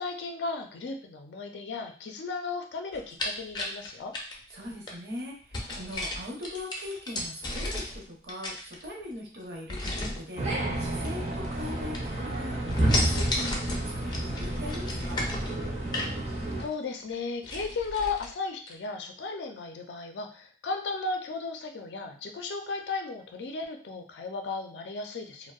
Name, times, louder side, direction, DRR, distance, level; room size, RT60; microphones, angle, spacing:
voice 1, 0.0-4.1 16.6-25.5, left 4 dB, 85° left, 3 dB, 0.4 m, -35 dB
sound 1, 2.9-5.0 5.5-8.0 8.3-9.1 9.7-10.2 11.0-11.7 11.9-12.3 12.7-16.2 16.7-16.8 17.1-17.2 17.4-18.3 18.7-18.8, left 1 dB, 25° left, 0.4 m, -33 dB
voice 2, 4.5-10.4 10.7-15.3, left 1 dB, 70° right, -1 dB, 0.7 m, -40 dB
sound 2, 10.4-16.6, right 1 dB, 40° right, 0.4 m, -30 dB
2.6 x 2.0 x 2.3 m, 0.42 s
head